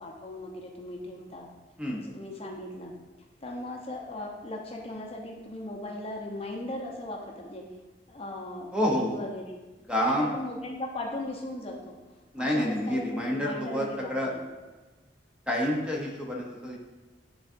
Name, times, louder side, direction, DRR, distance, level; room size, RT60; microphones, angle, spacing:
voice 1, 0.0-1.5 2.0-2.9 3.4-7.6 8.1-9.6 9.9-12.0 12.4-14.1, left 1 dB, 35° left, -1 dB, 0.8 m, -38 dB
voice 2, 8.7-9.2 9.9-10.4 12.3-14.3 15.5-16.8, equal, 5° right, -2 dB, 0.8 m, -28 dB
9.8 x 3.9 x 2.6 m, 1.2 s
head